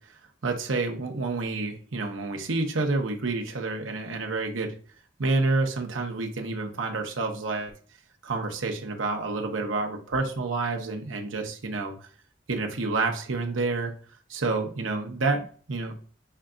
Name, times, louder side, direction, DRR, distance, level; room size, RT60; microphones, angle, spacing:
voice 1, 0.0-4.8 5.2-7.7 8.2-12.1 12.5-13.9 14.3-15.9, right 3 dB, 90° right, 3 dB, 0.9 m, -29 dB
5.6 x 3.8 x 2.3 m, 0.43 s
head